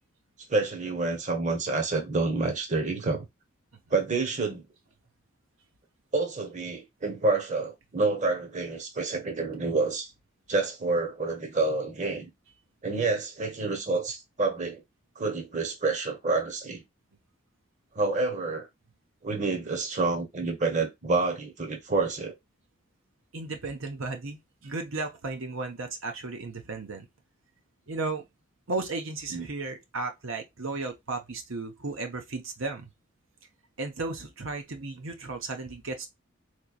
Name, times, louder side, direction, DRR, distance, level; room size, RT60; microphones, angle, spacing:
voice 1, 0.5-3.3 3.9-4.6 6.1-10.1 10.5-12.3 12.8-14.8 15.2-16.8 17.9-18.7 19.2-22.3 29.3-29.5, right 3 dB, 35° right, 1.0 m, -28 dB
voice 2, 23.3-27.1 27.9-28.3 28.7-32.9 33.8-36.1, right 3 dB, 80° right, 0.9 m, -34 dB
4.1 x 3.1 x 2.4 m
head